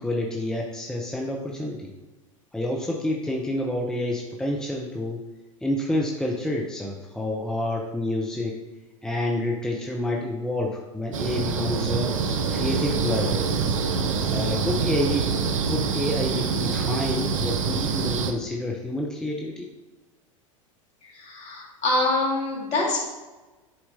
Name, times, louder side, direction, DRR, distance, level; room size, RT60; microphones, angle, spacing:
voice 1, 0.0-1.9 2.5-5.2 5.6-8.6 9.0-12.1 12.5-13.6 14.3-15.3 15.7-19.7, left 1 dB, 5° left, -1 dB, 0.7 m, -28 dB
sound 1, 11.1-18.3, right 5 dB, 70° right, 0.7 m, -25 dB
voice 2, 21.1-23.0, left 2 dB, 40° left, -2 dB, 2.2 m, -25 dB
10.5 x 4.6 x 2.7 m, 1.2 s
figure-of-eight pair, 85°, 17 cm